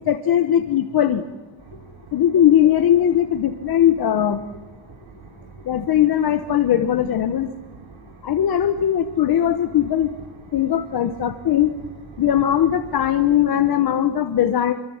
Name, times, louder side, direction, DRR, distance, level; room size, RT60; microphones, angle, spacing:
voice 1, 0.1-1.2 2.1-4.4 5.7-7.5 8.2-10.1 10.5-11.7 12.2-14.7, left 10 dB, 45° left, 8 dB, 1.1 m, -19 dB
sound 1, 1.6-13.3, right 5 dB, 65° right, 3.9 m, -45 dB
26.0 x 24.0 x 7.3 m, 1.3 s
cardioid pair, 160°, 50 cm